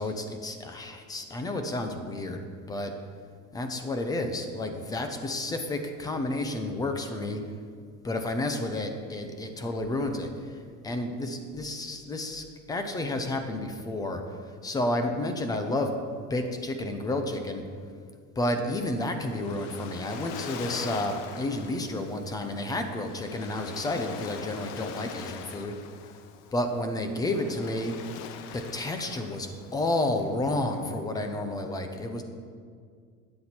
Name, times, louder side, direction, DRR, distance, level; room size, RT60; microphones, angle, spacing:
voice 1, 0.0-2.9 3.5-7.4 8.0-15.9 16.3-17.6 18.4-25.7 26.5-27.9 28.5-32.2, left 1 dB, 10° left, 6 dB, 0.5 m, -31 dB
Waves surf, 18.8-31.2, left 8 dB, 55° left, 0.7 m, -43 dB
12.0 x 8.6 x 4.3 m, 2.1 s
cardioid pair, 175°, 33 cm